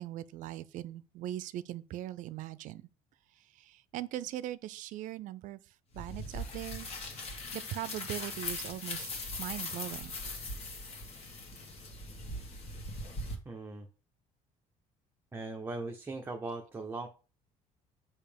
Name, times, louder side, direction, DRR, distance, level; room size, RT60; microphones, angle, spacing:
voice 1, 0.0-2.8 3.7-5.6 5.9-6.9 7.5-9.1 9.4-10.1, right 13 dB, 65° right, 0.4 m, -40 dB
sound 1, 6.0-13.4, left 2 dB, 45° left, 1.5 m, -40 dB
voice 2, 13.4-13.9 15.3-17.1, right 3 dB, 15° right, 0.6 m, -39 dB
6.7 x 2.8 x 5.1 m
cardioid pair, 135°, 14 cm